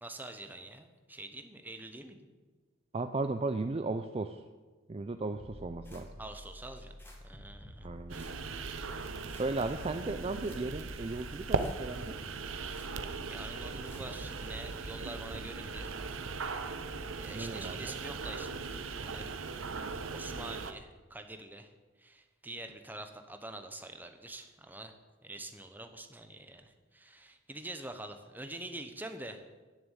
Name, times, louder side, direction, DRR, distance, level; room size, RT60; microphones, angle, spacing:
voice 1, 0.0-2.2 6.2-7.0 7.2-7.9 13.2-15.9 17.2-19.3 19.8-21.7 22.0-24.9 25.2-29.4, right 2 dB, 10° right, 7 dB, 1.0 m, -46 dB
voice 2, 2.9-4.5 4.9-6.1 7.8-8.4 9.4-12.2 17.3-18.0, right 3 dB, 30° right, 8 dB, 0.4 m, -36 dB
sound 1, 5.3-14.5, left 1 dB, 10° left, 2.1 m, -50 dB
sound 2, 8.1-20.7, right 4 dB, 70° right, 0.8 m, -39 dB
11.0 x 6.9 x 9.1 m, 1.3 s
head